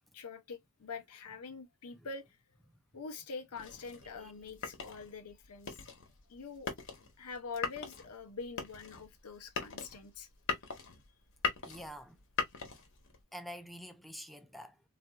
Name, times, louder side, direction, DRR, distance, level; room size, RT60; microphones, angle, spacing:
voice 1, 0.1-2.4 2.9-5.8 6.3-6.7 7.2-10.3, left 4 dB, 80° left, 0.8 m, -45 dB
sound 1, 3.5-13.2, left 5 dB, 60° left, 1.1 m, -40 dB
voice 2, 11.6-12.2 13.3-14.8, equal, ahead, 0.4 m, -47 dB
4.0 x 2.5 x 2.3 m
head